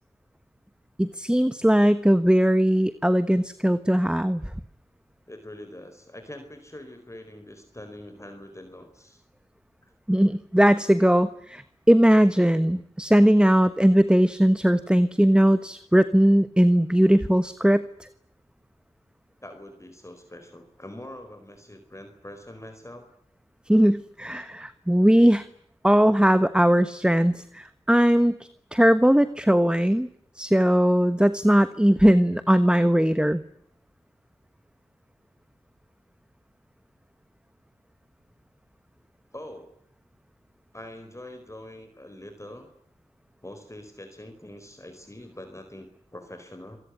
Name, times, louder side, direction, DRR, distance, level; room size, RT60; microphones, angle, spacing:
voice 1, 1.0-4.5 10.1-18.1 23.7-25.4 25.8-28.4 28.7-30.1 30.3-33.4, equal, 5° right, 13 dB, 1.3 m, -19 dB
voice 2, 5.3-9.2 19.4-23.0 39.3-39.7 40.7-42.7 43.4-46.8, left 1 dB, 25° left, 7 dB, 4.5 m, -43 dB
26.5 x 18.5 x 9.7 m, 0.70 s
wide cardioid pair, 45°, 12 cm